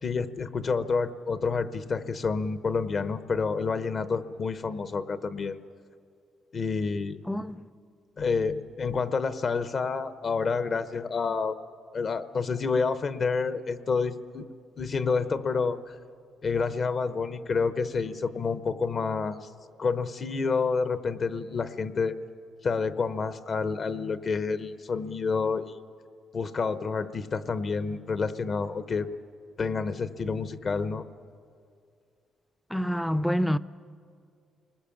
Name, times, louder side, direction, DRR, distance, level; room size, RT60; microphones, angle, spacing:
voice 1, 0.0-5.6 6.5-7.2 8.2-11.6 11.9-14.5 14.8-16.0 16.4-19.5 19.8-22.2 22.6-25.8 26.3-29.1 29.6-31.0, left 4 dB, 45° left, 0.9 m, -29 dB
voice 2, 7.3-7.6 32.7-33.6, equal, ahead, 0.5 m, -27 dB
29.5 x 20.5 x 7.2 m
cardioid pair, 90°, 0 cm